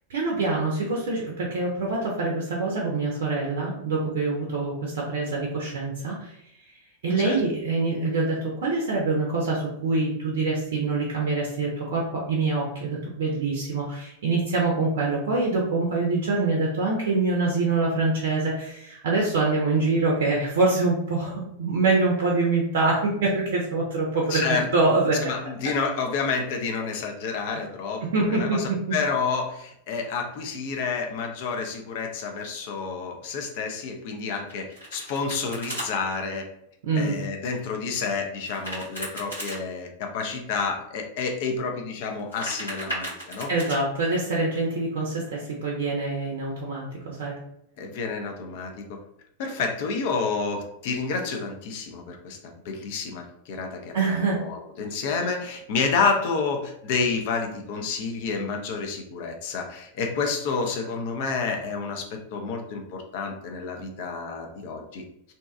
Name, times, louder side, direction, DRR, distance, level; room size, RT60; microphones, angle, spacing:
voice 1, 0.1-6.4 7.0-25.3 28.0-28.9 36.8-37.2 43.5-47.3 53.9-54.4, right 3 dB, 60° right, -2 dB, 0.5 m, -25 dB
voice 2, 24.3-24.7 25.2-36.5 37.0-43.5 47.8-49.0 49.4-65.0, left 4 dB, 50° left, 3 dB, 0.4 m, -29 dB
Domestic sounds home sounds, 34.5-35.9 38.4-39.6 42.1-43.8, right 1 dB, 90° left, 1.3 m, -35 dB
2.6 x 2.2 x 2.3 m, 0.77 s
figure-of-eight pair, 90°, 0 cm